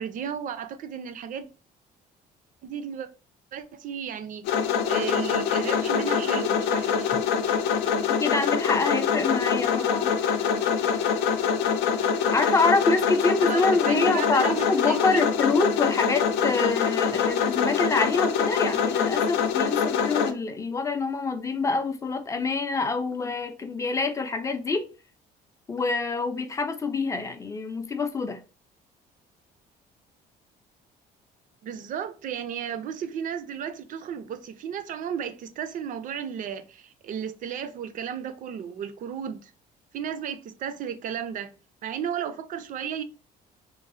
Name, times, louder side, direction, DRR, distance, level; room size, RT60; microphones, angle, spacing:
voice 1, 0.0-1.5 2.6-3.1 3.5-4.5 4.8-7.1 13.5-15.3 31.6-39.5 39.9-41.5 41.8-43.0, right 8 dB, 50° right, 0.4 m, -34 dB
sound 1, 4.5-20.3, left 7 dB, 80° left, 0.4 m, -24 dB
voice 2, 8.2-10.2 12.3-24.8 25.7-28.4, left 4 dB, 20° left, 0.4 m, -26 dB
3.1 x 2.0 x 2.5 m
cardioid pair, 110°, 17 cm